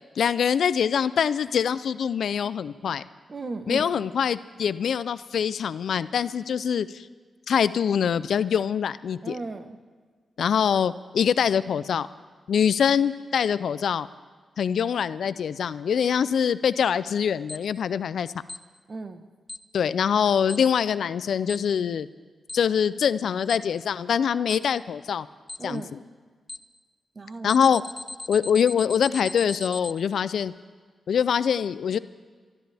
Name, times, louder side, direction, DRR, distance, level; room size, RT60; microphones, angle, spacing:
voice 1, 0.2-3.0 3.7-7.1 7.5-9.4 10.4-12.1 12.5-14.1 14.6-18.3 19.7-22.1 22.5-25.3 25.6-25.8 27.4-27.8 28.3-30.5 31.1-32.0, left 7 dB, 80° left, 16 dB, 0.4 m, -24 dB
voice 2, 3.3-4.1 9.2-9.8 18.9-19.2 25.6-26.0 27.1-27.6, right 3 dB, 45° right, 9 dB, 1.1 m, -35 dB
Alarm, 17.5-17.6 18.5-18.6 19.5-19.6 20.5-20.6 21.5-21.6 22.5-22.6 23.5-23.6 24.5-24.6 25.5-25.6 26.5-26.6 27.5-29.9, left 2 dB, 25° left, 0.7 m, -37 dB
26.0 x 12.5 x 3.5 m, 1.5 s
cardioid pair, 70°, 0 cm